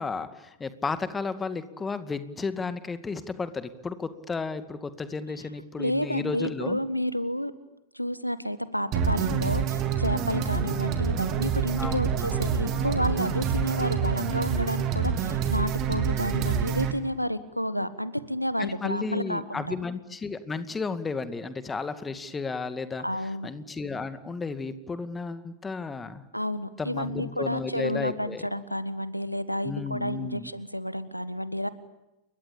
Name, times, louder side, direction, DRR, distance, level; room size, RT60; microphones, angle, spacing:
voice 1, 0.0-6.8 10.5-10.8 11.8-12.1 18.6-23.0 23.4-26.2 26.8-28.5 29.6-30.5, left 4 dB, 15° left, 11 dB, 2.2 m, -33 dB
voice 2, 5.8-7.5 7.9-19.7 23.0-23.5 26.3-31.7, equal, 90° left, 14 dB, 1.5 m, -30 dB
sound 1, 8.9-16.9, right 7 dB, 35° right, 3.5 m, -27 dB
29.5 x 23.5 x 8.6 m, 0.94 s
figure-of-eight pair, 90°, 0 cm